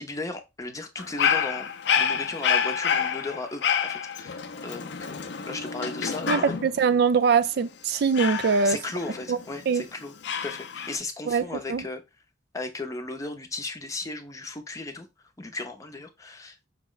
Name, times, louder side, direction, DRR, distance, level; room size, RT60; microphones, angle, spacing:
voice 1, 0.0-1.7 2.0-6.6 8.6-10.1 10.4-12.0 12.5-15.1 15.4-16.7, left 2 dB, 20° left, 0.6 m, -36 dB
Dog, 1.0-6.8 8.1-9.6 10.2-11.0, left 7 dB, 65° left, 0.5 m, -28 dB
voice 2, 6.3-8.8 9.3-9.4 9.7-9.8 11.3-11.8, right 5 dB, 60° right, 0.4 m, -23 dB
5.3 x 2.1 x 3.8 m
head